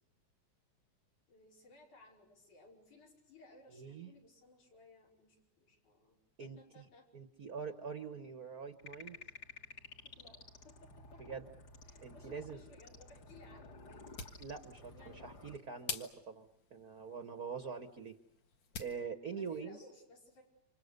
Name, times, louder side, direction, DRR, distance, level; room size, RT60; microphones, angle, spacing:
voice 1, 1.3-7.1 10.0-11.2 11.8-14.1 14.9-15.3 17.6-17.8 19.3-20.4, left 2 dB, 90° left, -2 dB, 6.6 m, -61 dB
voice 2, 3.7-4.1 6.4-6.8 7.1-9.2 11.3-11.5 12.0-12.6 14.4-18.1 18.8-19.8, right 5 dB, 55° right, 8 dB, 1.0 m, -44 dB
sound 1, 8.8-15.6, left 3 dB, 40° left, 1.7 m, -54 dB
sound 2, 13.9-19.0, left 6 dB, 70° left, 2.9 m, -49 dB
29.5 x 26.0 x 6.7 m, 0.78 s
omnidirectional pair, 3.4 m